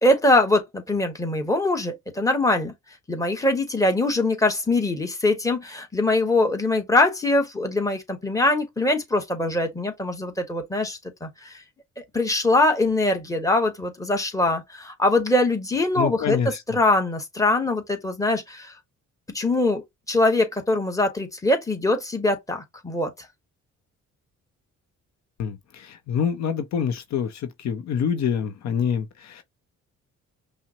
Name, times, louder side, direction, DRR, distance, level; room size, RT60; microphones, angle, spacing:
voice 1, 0.0-2.7 3.1-11.6 12.0-18.7 19.3-23.1, left 2 dB, 10° left, 1.2 m, -23 dB
voice 2, 16.0-16.6 25.4-29.4, left 7 dB, 65° left, 0.7 m, -26 dB
5.5 x 2.1 x 2.8 m
cardioid pair, 90°, 30 cm